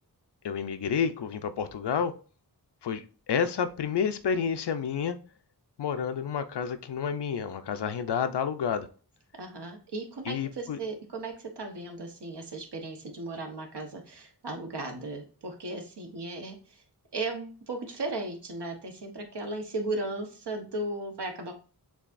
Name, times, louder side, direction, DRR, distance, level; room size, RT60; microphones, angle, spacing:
voice 1, 0.4-2.1 2.8-5.2 5.8-8.9 10.3-10.8, left 7 dB, 80° left, 10 dB, 0.6 m, -30 dB
voice 2, 9.4-16.8 17.1-21.5, right 2 dB, 80° right, 3 dB, 1.1 m, -36 dB
7.0 x 2.8 x 2.5 m, 0.37 s
wide cardioid pair, 70°, 40 cm